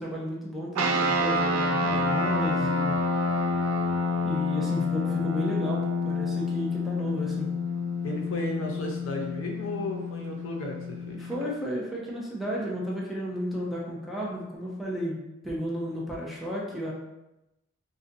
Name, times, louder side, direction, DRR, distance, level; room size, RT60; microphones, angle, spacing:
voice 1, 0.0-2.9 4.2-7.5 11.1-15.2 15.4-16.9, equal, ahead, -5 dB, 0.3 m, -33 dB
sound 1, 0.7-11.4, left 2 dB, 80° right, 0.3 m, -28 dB
voice 2, 8.0-11.3, left 1 dB, 70° left, 0 dB, 0.5 m, -34 dB
2.4 x 2.2 x 2.5 m, 0.94 s
head